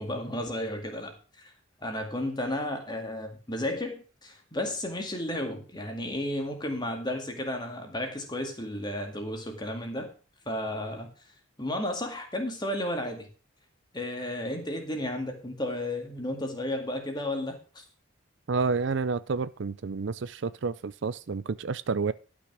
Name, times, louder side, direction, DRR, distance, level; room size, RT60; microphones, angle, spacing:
voice 1, 0.0-1.5 1.8-10.1 10.5-11.1 11.6-13.3 13.9-17.8, left 1 dB, 20° left, 4 dB, 2.1 m, -33 dB
voice 2, 18.5-22.1, right 4 dB, 60° right, 16 dB, 0.5 m, -29 dB
12.0 x 6.2 x 6.1 m, 0.37 s
head